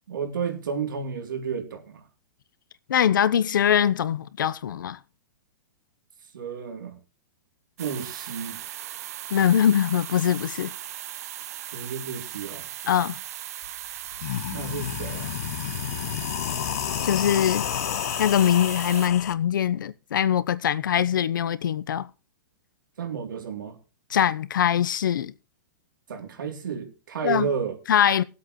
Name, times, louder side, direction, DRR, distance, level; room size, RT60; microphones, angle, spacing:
voice 1, 0.1-2.0 6.3-7.0 7.8-8.6 11.7-12.7 14.5-15.3 23.0-23.8 26.1-27.8, right 6 dB, 85° right, 3.1 m, -32 dB
voice 2, 2.9-5.0 9.3-10.7 12.9-13.2 17.0-17.7 18.2-22.1 24.1-25.3 27.2-27.5 27.9-28.2, left 9 dB, 80° left, 0.9 m, -22 dB
sound 1, 7.8-19.1, right 13 dB, 50° right, 0.6 m, -38 dB
sound 2, 13.6-13.7 14.1-19.3, left 12 dB, 50° left, 0.8 m, -30 dB
19.5 x 8.1 x 3.1 m
hypercardioid pair, 165°, 11 cm